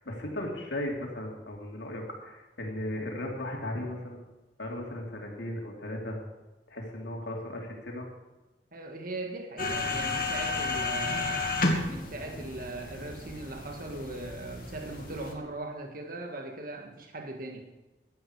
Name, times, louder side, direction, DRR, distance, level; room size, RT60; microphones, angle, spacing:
voice 1, 0.0-4.2 4.6-6.2 6.7-8.1, left 1 dB, 85° left, -1 dB, 3.3 m, -36 dB
voice 2, 8.7-11.5 11.8-17.6, right 2 dB, 55° right, 3 dB, 1.6 m, -39 dB
sound 1, 9.6-15.3, left 3 dB, 55° left, 2.4 m, -32 dB
16.5 x 12.0 x 4.8 m, 1.1 s
head